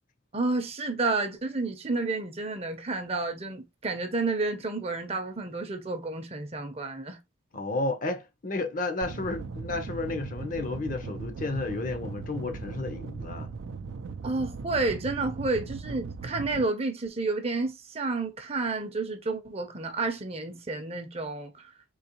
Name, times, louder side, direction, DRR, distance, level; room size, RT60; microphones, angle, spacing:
voice 1, 0.3-7.2 14.2-21.7, right 3 dB, 30° right, 0.6 m, -30 dB
voice 2, 7.5-13.5, left 2 dB, 40° left, 0.6 m, -32 dB
sound 1, 9.0-16.6, right 4 dB, 70° right, 0.4 m, -38 dB
3.8 x 2.9 x 2.9 m
head